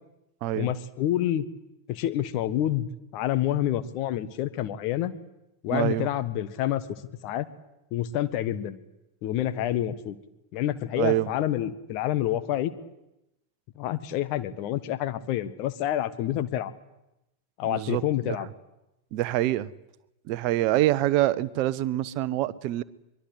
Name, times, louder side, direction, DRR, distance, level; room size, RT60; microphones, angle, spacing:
voice 1, 0.5-1.5 1.9-2.9 3.1-5.1 5.6-6.8 7.2-7.5 7.9-8.8 9.2-10.1 10.5-12.7 13.7-16.7 17.6-18.5, left 12 dB, 45° left, 1.6 m, -28 dB
voice 2, 5.7-6.1 11.0-11.3 17.6-18.4 19.1-19.7 20.3-22.8, right 15 dB, 45° right, 1.0 m, -25 dB
23.5 x 23.0 x 8.3 m
figure-of-eight pair, 90°, 0 cm